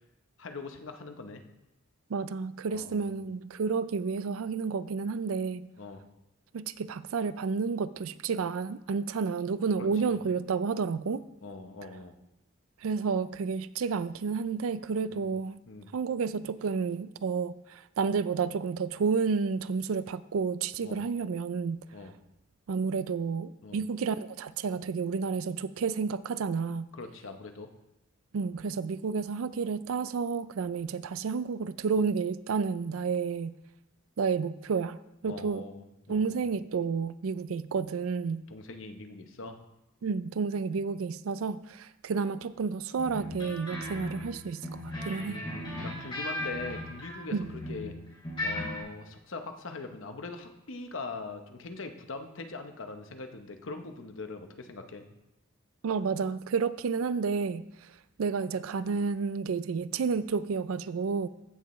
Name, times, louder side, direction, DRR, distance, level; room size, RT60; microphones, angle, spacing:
voice 1, 0.4-1.4 2.7-3.1 5.8-6.0 9.8-10.1 11.4-12.1 15.1-15.2 15.7-15.9 20.8-21.0 21.9-22.1 23.6-23.8 26.9-27.7 35.3-36.4 38.5-39.6 45.2-47.3 47.7-47.9 48.4-55.0, left 3 dB, 65° left, 6 dB, 0.9 m, -42 dB
voice 2, 2.1-5.7 6.5-11.2 12.8-15.6 15.9-21.8 22.7-26.9 28.3-33.6 34.2-35.0 35.2-35.7 36.1-38.4 40.0-45.4 47.3-47.5 55.8-57.9 58.2-61.3, right 5 dB, 80° right, 15 dB, 0.4 m, -31 dB
sound 1, 43.0-47.9 48.2-48.8, left 1 dB, 25° left, 3.8 m, -37 dB
15.0 x 6.7 x 3.1 m, 0.91 s
head